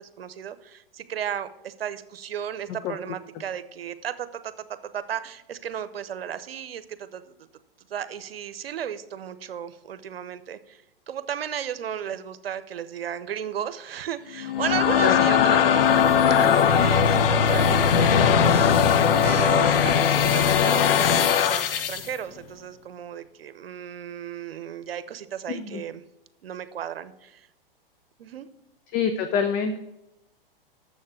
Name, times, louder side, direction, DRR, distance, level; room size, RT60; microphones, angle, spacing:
voice 1, 0.0-7.3 7.9-10.8 11.1-15.9 16.4-18.6 19.2-26.0 26.4-27.5 28.2-28.5, right 9 dB, 80° right, 13 dB, 0.8 m, -34 dB
sound 1, 14.4-22.1, left 7 dB, 70° left, 0.9 m, -19 dB
voice 2, 25.5-25.8 28.9-29.8, left 6 dB, 30° left, 8 dB, 0.7 m, -25 dB
7.2 x 6.5 x 7.1 m, 0.90 s
hypercardioid pair, 120°, 29 cm